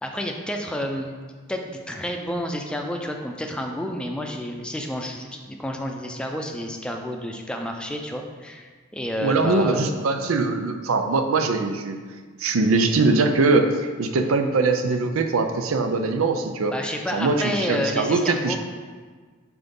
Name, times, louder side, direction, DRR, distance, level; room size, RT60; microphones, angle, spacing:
voice 1, 0.0-1.1 1.5-9.9 16.7-18.6, equal, 5° left, 2 dB, 0.5 m, -30 dB
voice 2, 9.2-12.0 12.4-16.7 17.1-18.6, right 3 dB, 90° right, 7 dB, 0.5 m, -22 dB
5.9 x 3.9 x 5.3 m, 1.5 s
head